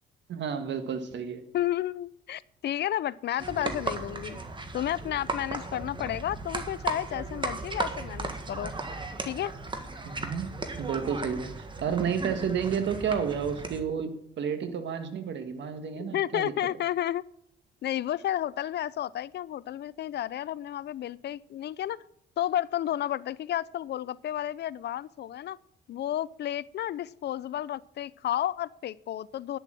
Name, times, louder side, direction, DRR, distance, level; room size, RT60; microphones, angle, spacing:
voice 1, 0.3-1.4 10.1-10.5 10.8-16.5, right 7 dB, 65° right, 8 dB, 1.6 m, -31 dB
voice 2, 1.5-4.4 4.7-8.7 9.3-9.5 16.0-17.2 17.8-22.0 22.4-25.6 25.9-29.6, left 12 dB, 60° left, 21 dB, 0.4 m, -32 dB
sound 1, 3.4-13.8, right 3 dB, 25° right, 1.7 m, -36 dB
11.0 x 7.1 x 7.5 m, 0.76 s
cardioid pair, 90°, 20 cm